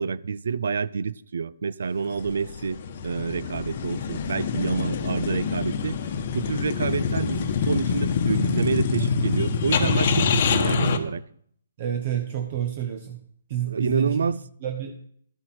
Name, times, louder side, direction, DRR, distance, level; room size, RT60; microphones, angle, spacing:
voice 1, 0.0-6.0 6.3-11.2 13.7-14.4, right 5 dB, 70° right, 0.5 m, -28 dB
sound 1, 2.1-11.0, left 5 dB, 50° left, 1.0 m, -25 dB
voice 2, 11.8-13.2 13.5-14.3 14.6-14.9, right 11 dB, 45° right, 1.2 m, -29 dB
12.0 x 7.4 x 4.3 m
figure-of-eight pair, 135°, 0 cm